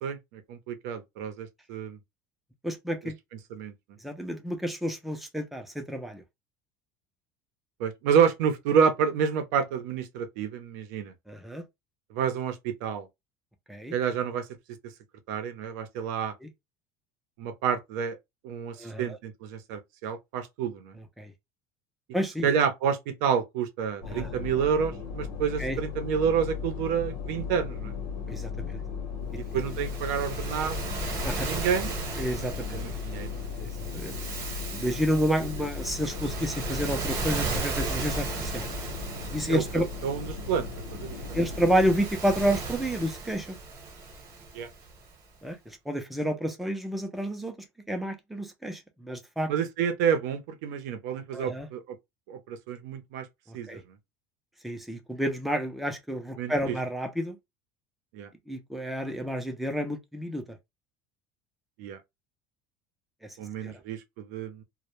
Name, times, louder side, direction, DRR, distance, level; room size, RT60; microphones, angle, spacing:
voice 1, 0.0-2.0 3.5-3.7 7.8-11.1 12.1-13.1 13.9-14.5 15.3-16.3 17.4-18.2 18.4-20.9 22.4-27.9 29.4-30.8 31.4-31.9 32.7-33.3 39.5-41.4 44.5-44.7 49.5-52.0 52.3-53.3 53.5-53.8 56.4-56.8 58.1-58.3 61.8-62.0 63.4-64.6, right 7 dB, 70° right, 0.6 m, -29 dB
voice 2, 2.6-3.2 4.0-6.2 11.3-11.6 13.7-14.0 16.4-16.5 18.8-19.2 20.9-21.3 22.1-22.5 24.0-24.3 25.6-25.8 28.3-28.8 31.2-31.5 32.2-32.8 33.6-34.1 34.7-38.7 39.3-39.9 41.3-43.6 45.4-47.5 47.9-49.5 51.3-51.7 53.5-53.8 54.6-57.4 58.5-60.6 63.2-63.4 63.6-63.7, equal, ahead, 0.4 m, -30 dB
sound 1, 24.0-42.0, left 5 dB, 85° left, 0.9 m, -37 dB
Waves surf, 29.5-45.0, right 3 dB, 30° right, 0.8 m, -36 dB
2.1 x 2.0 x 2.9 m
cardioid pair, 165°, 9 cm